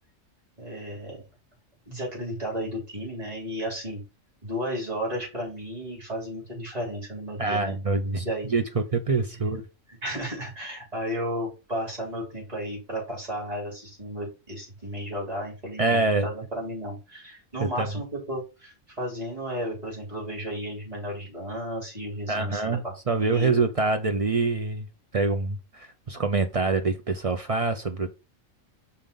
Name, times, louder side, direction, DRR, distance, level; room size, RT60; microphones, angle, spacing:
voice 1, 0.6-1.2 1.9-4.0 4.4-7.7 8.0-8.6 9.2-9.6 10.0-23.6, equal, 30° right, 3.7 m, -34 dB
voice 2, 7.4-8.3 8.5-9.6 15.8-16.3 17.6-17.9 22.3-24.9 25.1-28.1, right 3 dB, 55° right, 0.4 m, -25 dB
5.7 x 3.8 x 5.3 m
omnidirectional pair, 1.4 m